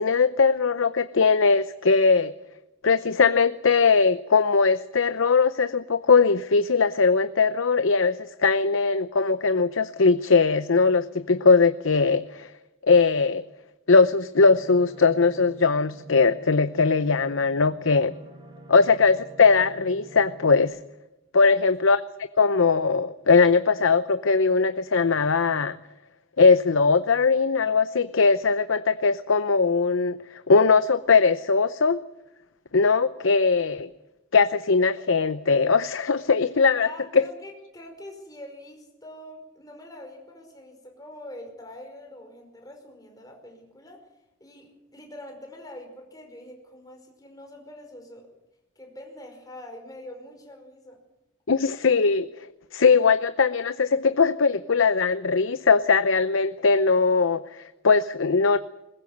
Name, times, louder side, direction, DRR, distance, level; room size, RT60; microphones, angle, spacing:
voice 1, 0.0-2.3 2.8-12.5 12.9-13.4 13.9-18.1 18.7-20.8 21.3-25.8 26.4-30.2 30.5-32.0 32.7-33.9 34.3-37.2 51.5-52.3 52.7-58.6, left 4 dB, 80° left, 12 dB, 0.7 m, -20 dB
sound 1, 14.5-20.6, right 1 dB, 25° right, 4.6 m, -47 dB
voice 2, 36.8-44.1 44.4-48.3 48.8-51.0, left 1 dB, 20° left, 3 dB, 5.2 m, -44 dB
21.5 x 20.5 x 8.0 m, 0.95 s
head